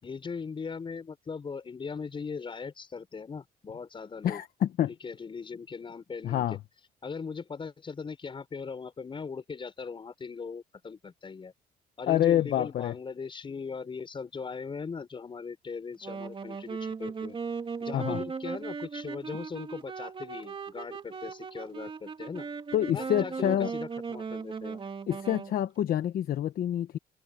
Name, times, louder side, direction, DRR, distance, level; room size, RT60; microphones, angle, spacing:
voice 1, 0.0-4.4 5.0-6.4 7.0-11.5 12.0-17.4 17.8-22.5 22.9-24.8, left 5 dB, 30° left, 6.5 m, -39 dB
voice 2, 4.2-4.9 6.2-6.6 12.1-12.9 17.9-18.2 22.7-23.7 25.1-27.0, left 11 dB, 60° left, 1.2 m, -27 dB
Wind instrument woodwind instrument, 16.0-25.5, right 5 dB, 30° right, 2.8 m, -37 dB
cardioid pair, 110°, 17 cm